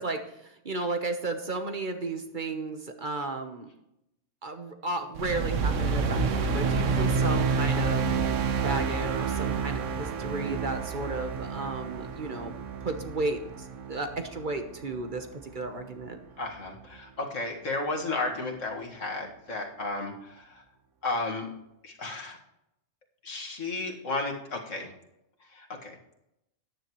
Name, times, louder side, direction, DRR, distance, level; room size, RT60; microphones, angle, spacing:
voice 1, 0.0-3.7 4.4-8.4 8.6-12.5 12.8-16.2, right 2 dB, 40° right, 6 dB, 1.2 m, -34 dB
sound 1, 5.1-15.6, right 5 dB, 75° right, 1.2 m, -29 dB
voice 2, 16.4-20.6 21.0-21.5 21.8-22.4 23.2-24.9 25.5-26.0, left 2 dB, 80° left, 1 dB, 2.2 m, -33 dB
14.0 x 10.0 x 3.1 m, 0.83 s
omnidirectional pair, 1.3 m